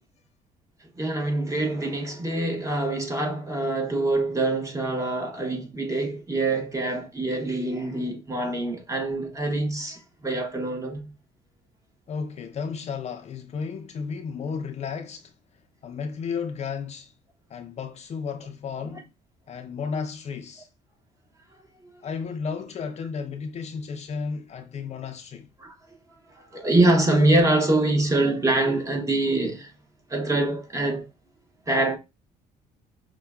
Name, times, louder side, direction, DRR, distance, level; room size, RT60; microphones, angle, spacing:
voice 1, 1.0-11.1 25.6-25.7 26.3-29.7 30.1-31.1 31.7-32.0, right 2 dB, 20° right, 0.9 m, -24 dB
voice 2, 12.1-15.3 15.8-17.1 17.5-19.1 19.5-20.7 22.0-25.5, left 5 dB, 40° left, 0.5 m, -33 dB
5.4 x 2.2 x 2.3 m
cardioid pair, 110°, 17 cm